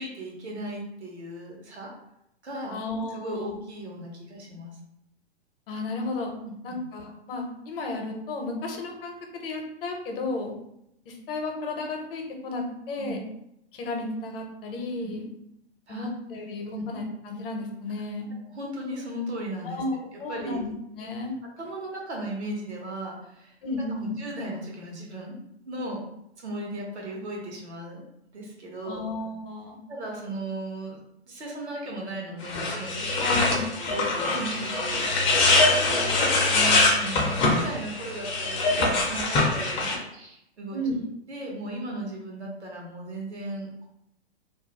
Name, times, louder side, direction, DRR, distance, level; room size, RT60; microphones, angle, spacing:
voice 1, 0.0-1.9 2.4-4.8 6.4-6.8 13.0-13.2 15.0-15.1 15.9-16.1 16.7-16.8 18.5-20.6 21.6-23.6 24.0-25.4 25.6-26.0 26.4-28.0 28.3-29.0 29.9-31.0 31.3-40.8 41.3-43.8, right 1 dB, 90° right, -2 dB, 1.0 m, -37 dB
voice 2, 2.7-3.6 5.7-6.3 6.6-9.1 9.4-10.5 11.1-13.2 13.7-15.3 15.9-18.3 19.6-20.7 21.0-21.3 23.6-24.1 28.8-29.8 33.2-33.7 40.7-41.0, left 2 dB, 60° left, 2 dB, 0.7 m, -33 dB
sound 1, 32.4-40.0, left 2 dB, 20° left, 0.4 m, -23 dB
2.5 x 2.1 x 2.9 m, 0.80 s
hypercardioid pair, 115°, 33 cm